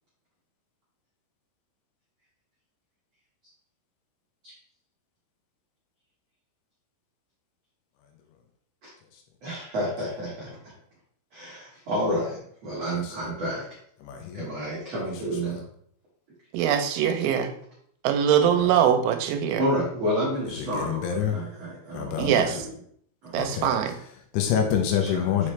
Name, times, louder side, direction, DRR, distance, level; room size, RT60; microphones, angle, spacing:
voice 1, 9.4-10.7 11.3-13.8 14.3-15.6 19.5-22.7 23.2-23.4 25.0-25.5, equal, 60° right, -7 dB, 1.7 m, -30 dB
voice 2, 14.0-14.5 15.0-15.1 18.4-18.8 20.5-21.4 21.9-22.6 23.3-25.5, left 8 dB, 80° left, 3 dB, 2.8 m, -28 dB
voice 3, 16.5-17.5 18.0-19.6 22.2-22.5 23.3-23.9, right 9 dB, 80° right, 7 dB, 3.1 m, -22 dB
7.0 x 5.0 x 3.2 m, 0.66 s
omnidirectional pair, 5.7 m